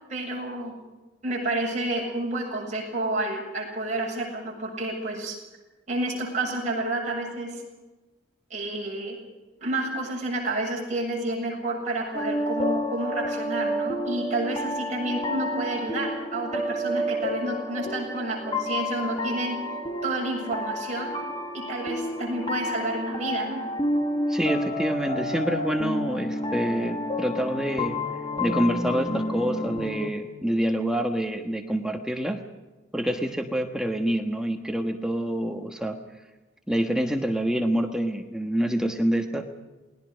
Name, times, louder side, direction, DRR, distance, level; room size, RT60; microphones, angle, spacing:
voice 1, 0.1-0.7 1.2-5.4 5.9-7.6 8.5-9.2 9.6-19.6 20.0-21.1 21.5-23.6, right 2 dB, 35° right, -2 dB, 7.3 m, -30 dB
sound 1, 12.1-30.1, left 1 dB, 25° left, 1.8 m, -30 dB
voice 2, 24.3-28.0 28.4-32.4 32.9-36.0 36.7-39.5, equal, 5° right, 3 dB, 1.3 m, -27 dB
28.0 x 20.5 x 5.2 m, 1.2 s
head